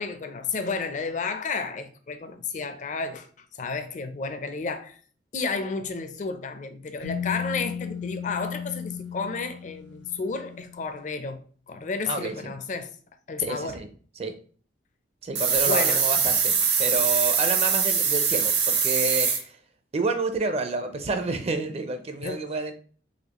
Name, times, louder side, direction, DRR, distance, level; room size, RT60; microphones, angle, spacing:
voice 1, 0.0-3.3 3.6-5.0 5.3-12.9 13.3-13.8 15.7-16.0 16.6-16.7 22.2-22.5, left 4 dB, 45° left, 0.5 m, -32 dB
sound 1, 7.0-10.9, left 7 dB, 90° left, 0.8 m, -35 dB
voice 2, 12.1-12.5 13.4-13.9 14.2-14.3 15.2-16.5 16.8-19.6 19.9-22.7, right 3 dB, 35° right, 0.5 m, -29 dB
sound 2, 15.3-19.4, right 6 dB, 70° right, 0.8 m, -23 dB
4.1 x 2.7 x 2.9 m
head